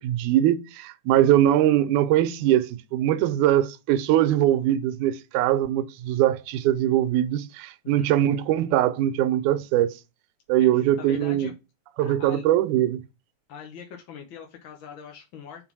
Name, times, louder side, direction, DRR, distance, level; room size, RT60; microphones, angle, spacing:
voice 1, 0.0-9.9 10.5-11.5 12.0-13.0, right 12 dB, 85° right, 2.2 m, -22 dB
voice 2, 10.6-11.5 12.0-12.5 13.5-15.7, left 7 dB, 65° left, 1.3 m, -42 dB
5.3 x 4.0 x 6.0 m
omnidirectional pair, 3.4 m